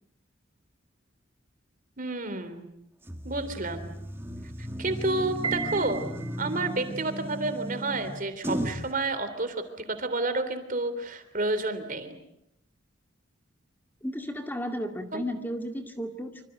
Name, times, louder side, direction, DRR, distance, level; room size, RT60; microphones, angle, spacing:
voice 1, 2.0-2.7 3.2-3.9 4.8-6.1 6.4-12.2 15.1-15.2, right 2 dB, 45° right, 10 dB, 3.4 m, -30 dB
sound 1, 3.1-8.9, equal, 10° right, 2.0 m, -35 dB
Piano, 5.4-6.7, right 6 dB, 25° right, 2.5 m, -35 dB
voice 2, 14.0-16.4, equal, 10° left, 4 dB, 2.2 m, -34 dB
26.5 x 26.0 x 7.9 m, 0.76 s
head